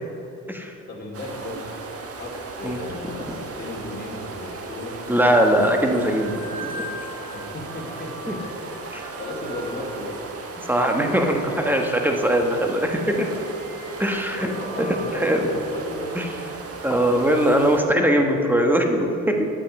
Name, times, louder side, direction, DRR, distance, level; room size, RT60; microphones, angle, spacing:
voice 1, 0.9-1.6 2.1-2.3 2.6-4.9 7.3-8.4 8.7-10.1 14.3-16.5, left 1 dB, 35° left, -3 dB, 2.4 m, -35 dB
sound 1, 1.1-17.8, right 4 dB, 50° right, 1.3 m, -37 dB
sound 2, 4.1-16.8, equal, 65° right, 2.2 m, -43 dB
voice 2, 5.1-6.8 8.9-9.0 10.6-13.3 14.0-14.5 14.8-15.5 16.1-16.3 16.8-19.5, right 1 dB, 5° right, 3 dB, 1.2 m, -21 dB
9.8 x 8.4 x 5.4 m, 2.7 s
cardioid pair, 90°, 30 cm